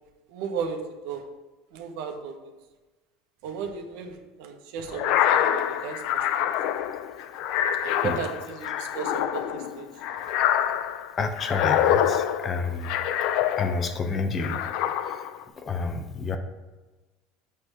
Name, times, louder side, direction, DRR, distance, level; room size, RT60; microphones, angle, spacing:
voice 1, 0.3-0.8 1.0-1.2 1.7-2.5 3.4-6.2 6.7-6.8 7.8-9.9, right 6 dB, 75° right, 4 dB, 1.1 m, -35 dB
sound 1, 4.9-14.0 14.4-15.4, left 10 dB, 65° left, 0.4 m, -26 dB
voice 2, 7.8-8.1 11.2-13.0 13.5-14.6 15.1-15.2 15.6-16.4, left 4 dB, 30° left, 7 dB, 0.8 m, -29 dB
8.2 x 3.4 x 6.2 m, 1.2 s
supercardioid pair, 135°, 0 cm